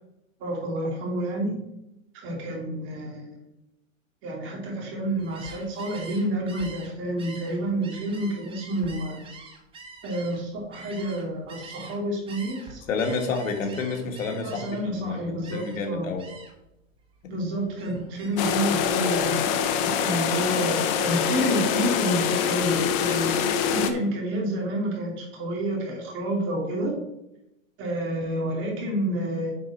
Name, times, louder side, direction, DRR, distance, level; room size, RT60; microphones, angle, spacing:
voice 1, 0.4-1.6 2.2-3.4 4.2-9.2 10.0-12.8 14.4-16.1 17.3-27.0 27.8-29.5, right 1 dB, 30° right, -1 dB, 2.8 m, -29 dB
Gull seagull, 5.2-12.0 12.3-15.0 15.4-15.9 16.2-16.7 17.0-18.5, right 4 dB, 15° right, 1.1 m, -45 dB
voice 2, 12.9-16.2, left 4 dB, 80° left, 3 dB, 1.9 m, -29 dB
sound 1, 18.4-23.9, left 8 dB, 20° left, 0.5 m, -24 dB
9.3 x 5.2 x 4.3 m, 0.87 s
hypercardioid pair, 150°, 39 cm